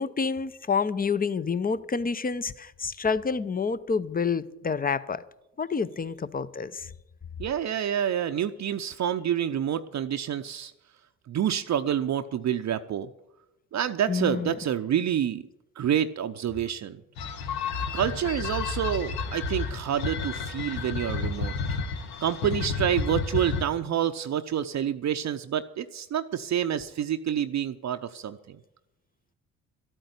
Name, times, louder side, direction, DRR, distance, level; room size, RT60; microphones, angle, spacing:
voice 1, 0.0-5.2 5.6-6.9 14.1-14.5, left 5 dB, 25° left, 16 dB, 0.8 m, -28 dB
voice 2, 7.4-10.7 11.3-13.1 13.7-15.4 15.8-17.0 17.9-21.8 22.2-28.6, right 9 dB, 50° right, 8 dB, 0.7 m, -28 dB
sound 1, 17.2-23.6, left 4 dB, 75° left, 1.4 m, -31 dB
12.5 x 8.9 x 8.2 m, 0.90 s
hypercardioid pair, 55°, 36 cm